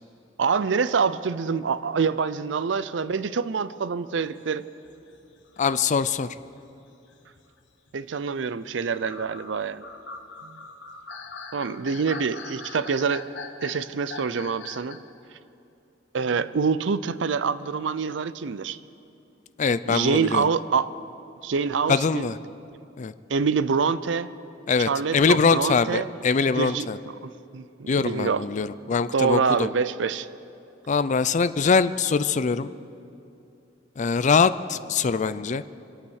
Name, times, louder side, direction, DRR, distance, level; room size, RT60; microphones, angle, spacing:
voice 1, 0.4-4.7 7.9-9.8 10.4-10.6 11.5-13.3 13.6-15.0 16.1-18.8 19.9-20.9 21.4-22.3 23.3-24.3 24.8-26.1 26.5-26.9 27.2-28.4 29.1-30.3, right 5 dB, 75° right, 15 dB, 0.5 m, -26 dB
sound 1, 4.3-6.5 7.1-8.2 8.9-15.1, left 4 dB, 70° left, 1.3 m, -42 dB
voice 2, 5.6-6.3 19.6-20.4 21.9-22.4 23.0-23.1 24.7-27.0 27.9-29.7 30.9-32.7 34.0-35.6, left 5 dB, 40° left, 14 dB, 0.4 m, -23 dB
25.5 x 8.7 x 6.4 m, 2.7 s
head